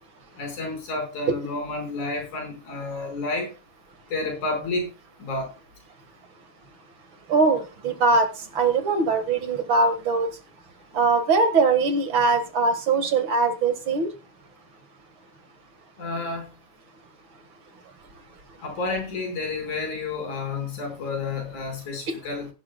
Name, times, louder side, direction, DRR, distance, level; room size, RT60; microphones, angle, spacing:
voice 1, 0.4-3.5 4.1-4.9 5.2-5.5 16.0-16.5 18.6-22.5, left 3 dB, 90° left, 2 dB, 6.2 m, -30 dB
voice 2, 7.3-8.3 8.5-10.3 10.9-14.1, right 4 dB, 50° right, 9 dB, 2.0 m, -21 dB
17.5 x 10.5 x 2.2 m, 0.30 s
omnidirectional pair, 3.3 m